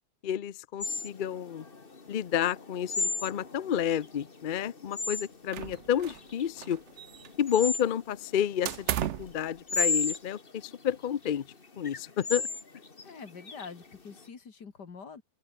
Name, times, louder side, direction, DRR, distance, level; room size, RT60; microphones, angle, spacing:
voice 1, 0.2-1.6 2.1-6.8 7.4-8.9 9.2-11.5 11.8-12.5, left 9 dB, 55° left, 0.5 m, -30 dB
sound 1, 0.8-14.2, left 4 dB, 35° left, 2.1 m, -35 dB
sound 2, 5.5-6.3 6.6-7.5 8.6-9.4, right 11 dB, 60° right, 0.8 m, -34 dB
voice 2, 13.0-15.2, left 5 dB, 85° left, 2.9 m, -45 dB
open air
omnidirectional pair, 1.8 m